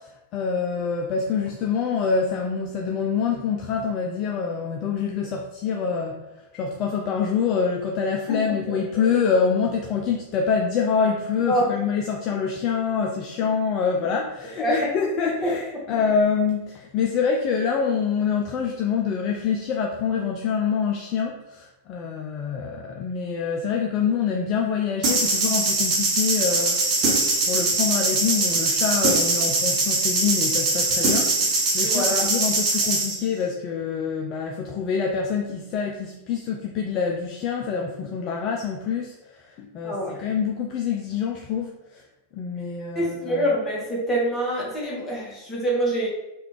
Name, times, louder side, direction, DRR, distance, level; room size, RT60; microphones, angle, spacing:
voice 1, 0.0-26.8 27.4-42.0 42.3-43.4, left 6 dB, 35° left, 1 dB, 0.3 m, -26 dB
voice 2, 8.5-8.8 11.5-11.7 14.6-14.9 15.4-15.9 31.8-32.4 39.8-40.2 42.9-46.1, right 1 dB, 15° left, -4 dB, 1.1 m, -26 dB
sound 1, 25.0-33.2, right 3 dB, 40° right, 0.9 m, -22 dB
3.2 x 2.4 x 3.0 m, 0.98 s
figure-of-eight pair, 90°, 0 cm